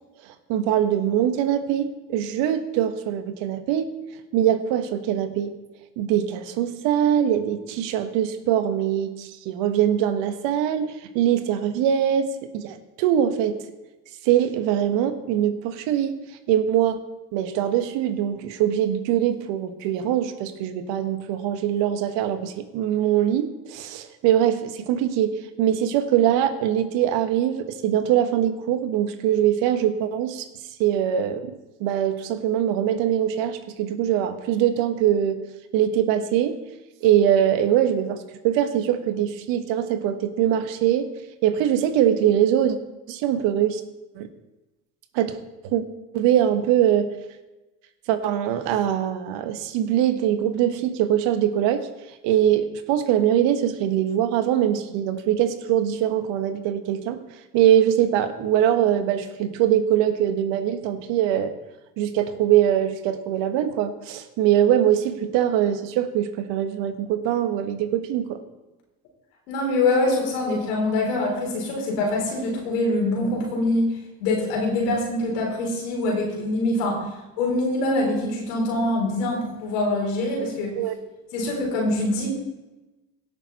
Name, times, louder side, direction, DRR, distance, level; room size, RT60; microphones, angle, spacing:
voice 1, 0.5-3.9 4.3-5.5 6.0-13.6 14.2-16.2 16.5-17.0 17.3-30.5 30.8-35.4 35.7-36.6 37.0-41.1 41.4-42.8 43.1-43.8 44.1-44.3 45.1-45.4 45.6-45.8 46.1-47.1 48.1-51.9 52.2-57.2 57.5-61.5 62.0-68.4 80.8-80.9, right 10 dB, 65° right, 9 dB, 1.4 m, -22 dB
voice 2, 69.5-77.0 77.4-80.8 81.3-82.3, left 2 dB, 80° left, -1 dB, 4.5 m, -24 dB
17.0 x 6.6 x 4.2 m, 1.1 s
hypercardioid pair, 75°, 47 cm